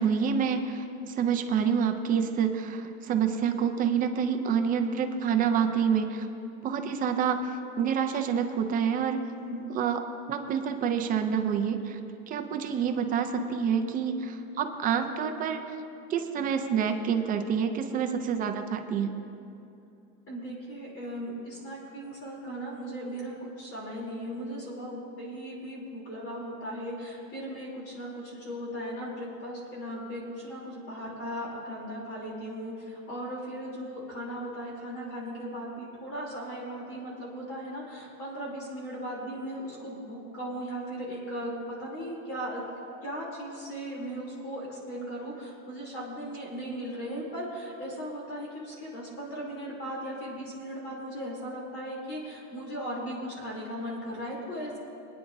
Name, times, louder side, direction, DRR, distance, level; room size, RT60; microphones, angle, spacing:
voice 1, 0.0-6.3 6.6-9.2 9.7-10.0 10.3-12.0 12.3-15.6 16.1-19.1, right 7 dB, 20° right, 6 dB, 0.4 m, -27 dB
voice 2, 9.3-9.6 20.3-42.6 43.0-54.8, equal, 30° left, -4 dB, 3.1 m, -37 dB
23.0 x 9.7 x 2.6 m, 2.7 s
supercardioid pair, 145°, 43 cm